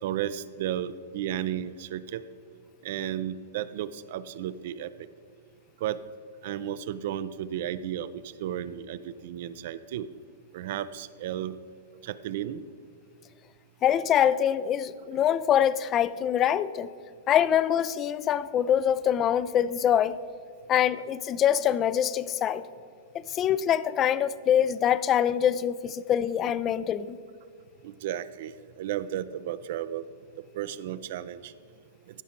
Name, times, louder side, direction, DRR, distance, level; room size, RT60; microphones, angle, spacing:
voice 1, 0.0-2.2 2.8-4.9 5.8-6.0 6.4-10.1 10.5-11.6 12.0-12.6 27.8-30.0 30.5-31.5, right 11 dB, 60° right, 14 dB, 0.4 m, -33 dB
voice 2, 13.8-16.9 17.3-20.2 20.7-22.7 23.1-27.2, left 9 dB, 30° left, 16 dB, 0.3 m, -24 dB
14.5 x 5.6 x 4.4 m, 2.2 s
hypercardioid pair, 110°, 0 cm